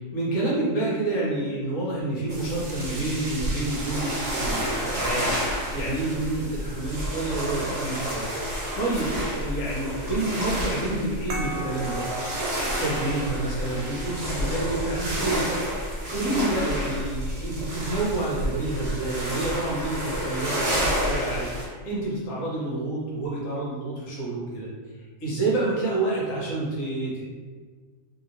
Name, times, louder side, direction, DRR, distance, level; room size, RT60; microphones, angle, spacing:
voice 1, 0.0-8.5 8.7-12.1 12.5-15.5 16.1-24.7 24.9-27.2, right 2 dB, 80° left, -6 dB, 1.4 m, -29 dB
sound 1, 2.3-21.7, equal, 55° right, 1.1 m, -30 dB
sound 2, 11.3-16.4, right 2 dB, 80° right, 1.0 m, -40 dB
3.0 x 2.9 x 2.6 m, 1.5 s
omnidirectional pair, 1.4 m